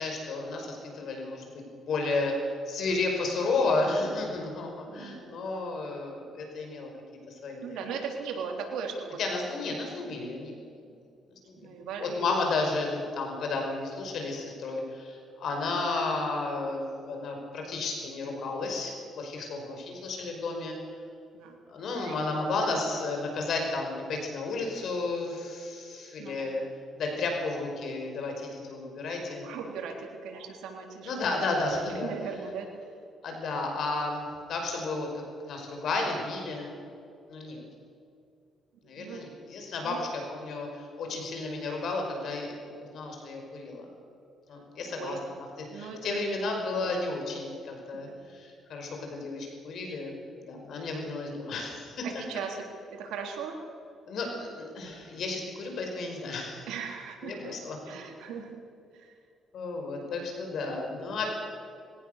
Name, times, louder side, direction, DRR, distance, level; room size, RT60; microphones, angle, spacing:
voice 1, 0.0-2.3 2.7-6.9 7.3-7.8 9.2-10.6 10.8-10.9 11.5-11.7 12.0-20.7 21.7-26.6 26.9-29.5 31.0-32.1 33.2-35.1 35.5-36.7 37.3-37.6 38.8-43.9 44.5-52.1 54.1-56.7 57.2-57.8 59.5-61.3, left 3 dB, 65° left, 2 dB, 5.3 m, -32 dB
voice 2, 4.9-5.4 7.6-9.2 11.6-12.3 21.3-21.6 21.9-22.3 26.2-26.5 29.4-32.7 38.8-39.3 39.8-40.1 44.9-45.3 45.7-47.2 47.9-48.3 52.0-53.6 56.6-57.5 57.9-58.6 58.9-59.1, right 5 dB, 90° right, 1 dB, 3.7 m, -39 dB
21.5 x 17.5 x 6.8 m, 2.5 s
cardioid pair, 90°, 0 cm